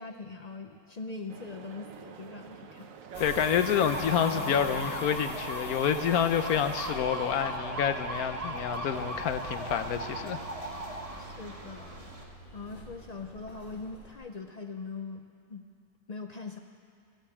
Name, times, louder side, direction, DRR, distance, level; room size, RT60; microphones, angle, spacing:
voice 1, 0.0-2.9 11.2-12.0 12.5-15.2 15.5-15.6 16.1-16.6, left 4 dB, 60° left, 5 dB, 0.4 m, -41 dB
sound 1, 1.3-9.1, right 6 dB, 65° right, 1.2 m, -48 dB
sound 2, 3.1-14.1, left 1 dB, 40° left, 1.8 m, -44 dB
voice 2, 3.2-10.4, left 8 dB, 80° left, 9 dB, 1.2 m, -28 dB
sound 3, 3.7-12.2, right 2 dB, 25° right, 1.3 m, -38 dB
15.5 x 8.0 x 8.4 m, 2.5 s
omnidirectional pair, 1.5 m